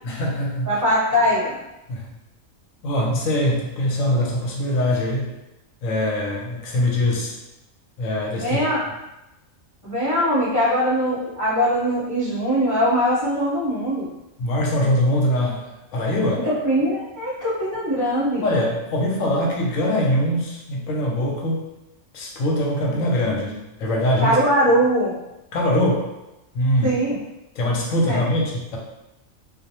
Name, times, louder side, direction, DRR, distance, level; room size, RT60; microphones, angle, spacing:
voice 1, 0.0-0.7 1.9-2.0 2.8-5.3 5.8-7.3 8.0-8.6 14.4-16.5 18.4-21.6 22.1-24.4 25.5-26.1 26.5-27.0 27.6-28.8, left 1 dB, 80° left, -2 dB, 1.0 m, -22 dB
voice 2, 0.6-1.6 8.3-8.8 9.8-14.1 16.3-18.4 24.2-25.1 26.8-27.2 28.1-28.2, equal, 15° right, -10 dB, 1.0 m, -21 dB
2.4 x 2.1 x 2.8 m, 0.94 s
omnidirectional pair, 1.4 m